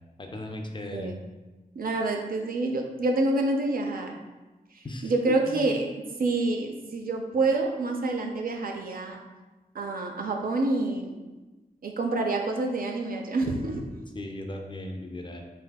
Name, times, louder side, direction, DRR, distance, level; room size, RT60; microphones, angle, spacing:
voice 1, 0.2-1.1 4.8-5.7 14.2-15.4, left 1 dB, 30° left, 3 dB, 0.3 m, -37 dB
voice 2, 1.8-4.1 5.0-5.9 6.2-9.2 9.8-11.2 11.8-13.8, right 2 dB, 70° right, 2 dB, 0.4 m, -27 dB
3.4 x 2.6 x 2.2 m, 1.2 s
wide cardioid pair, 65°, 16 cm